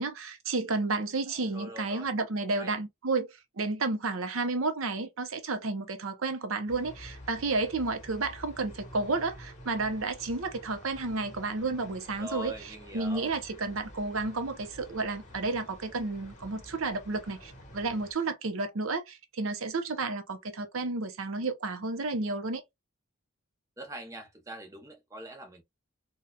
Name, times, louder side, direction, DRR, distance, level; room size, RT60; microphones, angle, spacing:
voice 1, 0.0-3.3 3.6-22.6, right 3 dB, 85° right, 0.7 m, -31 dB
voice 2, 1.3-2.1 2.6-2.7 12.1-13.3 23.8-25.6, right 1 dB, 15° right, 0.6 m, -43 dB
sound 1, 6.7-18.1, left 1 dB, 35° left, 1.3 m, -49 dB
4.0 x 2.3 x 2.2 m
head